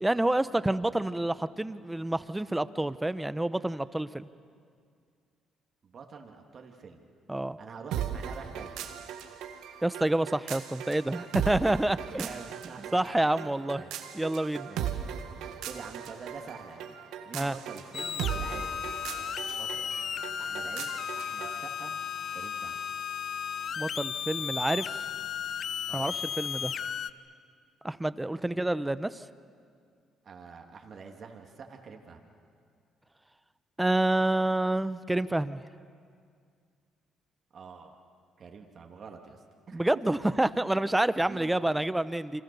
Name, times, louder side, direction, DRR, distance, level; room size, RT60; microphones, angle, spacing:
voice 1, 0.0-4.3 7.3-7.6 9.8-12.3 12.9-13.8 14.1-14.7 17.3-17.5 23.8-24.9 25.9-26.7 27.8-29.2 33.8-35.6 39.7-42.4, right 1 dB, 10° right, 14 dB, 0.9 m, -28 dB
voice 2, 5.8-7.1 7.6-8.8 12.1-13.0 13.3-13.9 14.6-15.0 15.6-17.0 17.2-18.8 19.6-19.9 20.4-21.9 22.3-22.8 25.9-26.2 28.2-28.6 30.2-32.2 37.5-37.9 38.4-40.2 41.3-41.6, right 5 dB, 50° right, 2 dB, 2.6 m, -46 dB
sound 1, 7.9-21.6, right 9 dB, 80° right, 1.7 m, -38 dB
sound 2, 17.9-27.1, left 8 dB, 60° left, 0.7 m, -35 dB
28.5 x 25.5 x 7.0 m, 2.2 s
supercardioid pair, 70°, 0 cm